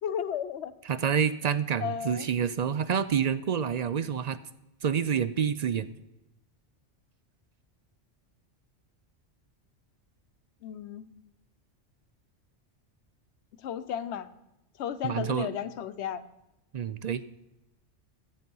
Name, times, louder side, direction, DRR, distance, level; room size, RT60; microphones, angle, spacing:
voice 1, 0.0-0.7 1.8-2.3 10.6-11.1 13.6-14.3 14.8-16.3, left 9 dB, 70° left, 13 dB, 1.0 m, -34 dB
voice 2, 0.9-4.4 4.8-5.9 15.0-15.5 16.7-17.2, right 7 dB, 55° right, 14 dB, 0.4 m, -28 dB
14.0 x 9.2 x 5.4 m, 0.92 s
omnidirectional pair, 1.2 m